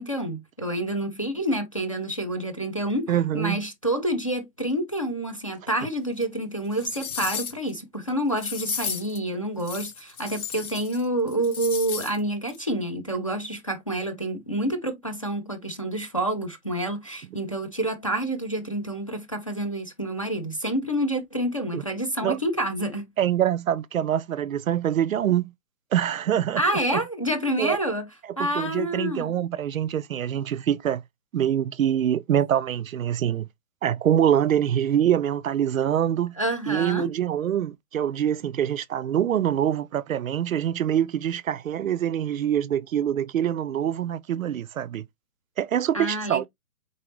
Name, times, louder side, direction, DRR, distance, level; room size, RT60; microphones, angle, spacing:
voice 1, 0.0-23.0 26.6-28.1 28.4-29.3 36.4-37.1 45.9-46.4, right 1 dB, 25° left, 0.5 m, -28 dB
voice 2, 3.1-3.6 21.7-21.8 22.2-22.4 23.2-25.5 25.9-26.6 26.9-27.0 27.6-27.8 28.4-31.0 31.3-33.5 33.8-36.3 36.7-45.0 45.6-46.4, right 10 dB, 65° right, 0.5 m, -24 dB
sound 1, 6.2-6.3 6.7-7.7 8.4-9.2 9.6-11.0 11.3-12.2 12.5-12.6, left 7 dB, 75° left, 1.2 m, -34 dB
4.2 x 3.8 x 3.0 m
hypercardioid pair, 165°, 45 cm